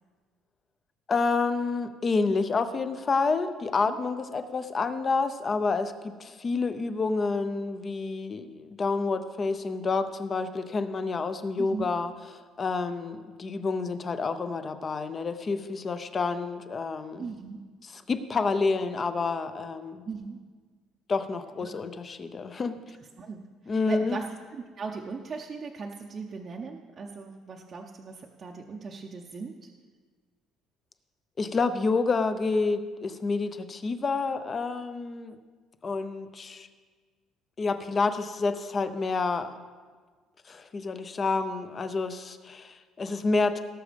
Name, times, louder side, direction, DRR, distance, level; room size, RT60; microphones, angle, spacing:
voice 1, 1.1-12.1 12.6-17.3 17.8-20.0 21.1-22.8 23.7-24.2 31.4-35.4 35.8-36.7 37.6-39.5 40.5-43.6, left 4 dB, 25° left, 11 dB, 0.6 m, -29 dB
voice 2, 11.6-11.9 17.2-17.6 20.1-20.4 21.6-21.7 23.2-29.7, right 5 dB, 25° right, 0 dB, 0.7 m, -38 dB
18.0 x 6.4 x 5.2 m, 1.5 s
cardioid pair, 165°, 0 cm